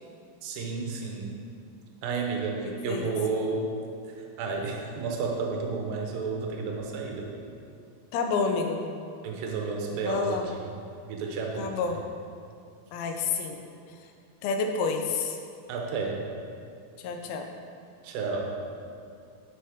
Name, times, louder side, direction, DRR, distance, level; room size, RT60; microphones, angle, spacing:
voice 1, 0.4-1.3 2.0-3.7 4.4-7.4 9.2-10.5 11.1-12.0 15.7-16.2 18.0-18.5, right 4 dB, 75° right, 0 dB, 2.6 m, -31 dB
voice 2, 2.6-3.1 8.1-8.8 10.0-10.5 11.6-12.0 12.9-13.6 14.4-15.4 17.0-17.5, left 4 dB, 85° left, 3 dB, 2.6 m, -29 dB
10.5 x 5.6 x 3.5 m, 2.3 s
omnidirectional pair, 4.3 m